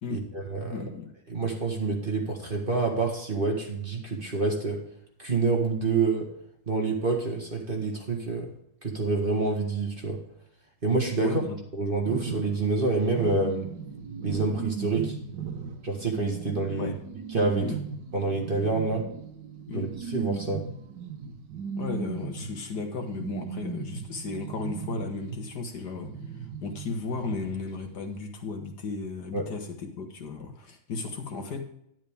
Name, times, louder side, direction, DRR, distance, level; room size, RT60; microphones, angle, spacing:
voice 1, 0.1-0.8 1.3-4.8 5.2-6.3 6.7-8.5 8.8-10.2 10.8-11.4 11.8-13.7 14.2-15.2 15.8-16.9 17.3-17.7 18.1-19.1 19.7-20.7 29.3-29.5, right 3 dB, 30° right, 1 dB, 1.7 m, -27 dB
voice 2, 0.7-1.1 11.2-11.6 16.8-16.9 17.6-17.8 19.7-19.9 21.8-31.6, left 4 dB, 60° left, 4 dB, 1.9 m, -35 dB
sound 1, 12.0-25.6 26.0-27.9 28.1-28.2, right 6 dB, 65° right, 1.8 m, -37 dB
10.5 x 10.5 x 3.5 m, 0.72 s
omnidirectional pair, 2.0 m